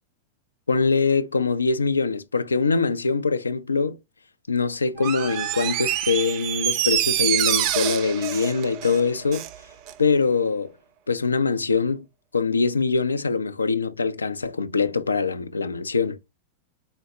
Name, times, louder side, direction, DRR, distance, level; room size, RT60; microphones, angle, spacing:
voice 1, 0.7-4.0 4.5-9.5 10.0-10.7 11.1-12.1 12.3-16.2, left 4 dB, 75° left, 0.3 m, -23 dB
Door, 5.0-9.6 9.9-10.0, right 12 dB, 40° right, 0.4 m, -26 dB
4.0 x 2.0 x 3.7 m
figure-of-eight pair, 90°, 0 cm